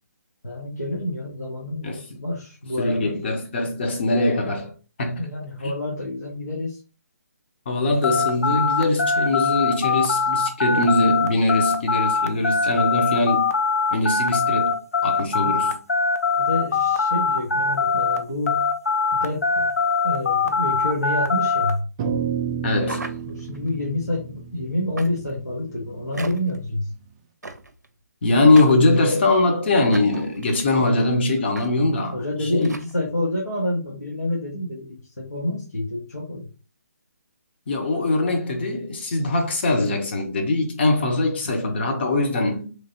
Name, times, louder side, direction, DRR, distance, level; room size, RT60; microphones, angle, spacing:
voice 1, 0.4-3.2 5.2-6.8 10.8-11.1 15.4-15.6 16.4-18.7 19.1-19.7 20.0-21.9 23.2-26.9 30.8-30.9 32.1-36.5 41.5-41.6, left 1 dB, 75° left, 1.0 m, -28 dB
voice 2, 1.8-2.2 2.8-4.7 5.0-5.3 7.7-13.5 13.9-15.8 22.6-23.2 28.2-32.7 37.7-42.8, left 2 dB, 40° left, 0.8 m, -22 dB
sound 1, 8.0-18.2 18.5-21.7, left 4 dB, 60° left, 0.5 m, -22 dB
sound 2, 22.0-26.5, right 7 dB, 20° right, 0.4 m, -31 dB
sound 3, 22.8-23.7 25.0-25.4 26.1-26.6 27.4-27.9 28.6-29.4 29.9-30.6 31.5-31.7 32.0-32.1 32.6-32.9, right 2 dB, 75° right, 0.5 m, -37 dB
3.2 x 2.7 x 2.7 m
figure-of-eight pair, 140°, 9 cm